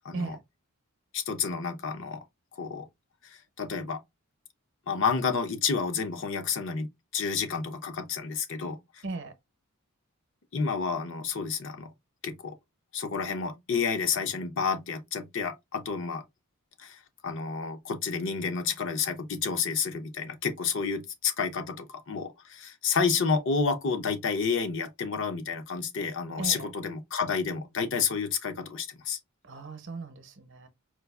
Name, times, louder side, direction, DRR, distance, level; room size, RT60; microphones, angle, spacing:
voice 1, 0.0-0.4 1.1-2.2 2.6-2.9 3.2-4.0 4.9-9.0 10.5-11.9 12.2-12.6 12.9-16.2 16.8-29.2, left 5 dB, 55° left, 0.6 m, -30 dB
voice 2, 9.0-9.3 26.4-26.7 29.4-30.7, right 3 dB, 55° right, 0.7 m, -37 dB
4.6 x 2.4 x 2.3 m
head